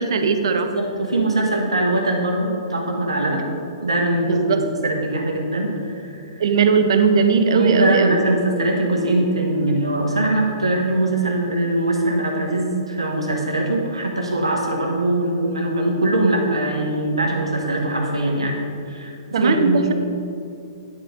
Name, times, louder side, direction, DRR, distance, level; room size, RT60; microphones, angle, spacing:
voice 1, 0.0-0.7 4.2-4.6 6.4-8.2 19.3-19.9, right 5 dB, 65° right, 8 dB, 0.7 m, -18 dB
voice 2, 0.5-3.4 3.8-6.1 7.5-18.6 18.9-19.9, right 1 dB, 85° right, 0 dB, 1.4 m, -22 dB
10.5 x 4.2 x 5.1 m, 2.7 s
hypercardioid pair, 120°, 3 cm